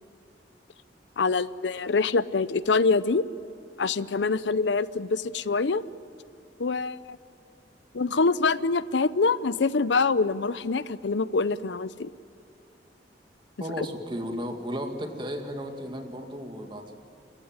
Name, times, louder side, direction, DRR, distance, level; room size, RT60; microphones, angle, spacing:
voice 1, 1.2-3.2 3.8-5.8 6.6-7.2 7.9-12.1 13.8-13.9, left 4 dB, 75° left, 16 dB, 0.6 m, -25 dB
voice 2, 13.6-17.0, equal, 30° right, 4 dB, 2.4 m, -34 dB
29.0 x 15.5 x 9.7 m, 2.8 s
head